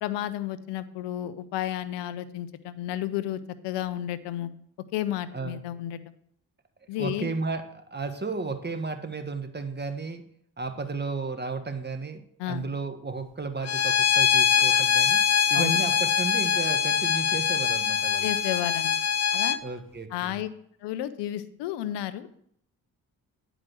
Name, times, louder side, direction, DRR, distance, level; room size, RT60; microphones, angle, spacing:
voice 1, 0.0-4.5 4.9-6.1 6.9-7.3 12.4-12.6 15.5-15.8 18.2-19.0 19.3-19.6 20.1-20.5 20.8-22.3, left 12 dB, 85° left, 14 dB, 0.7 m, -32 dB
voice 2, 7.0-7.6 7.9-10.2 10.6-15.2 15.5-18.3 19.6-20.4, right 4 dB, 25° right, 8 dB, 1.4 m, -33 dB
Bowed string instrument, 13.6-19.6, left 7 dB, 40° left, 0.7 m, -23 dB
9.7 x 5.1 x 6.2 m, 0.67 s
supercardioid pair, 50°, 41 cm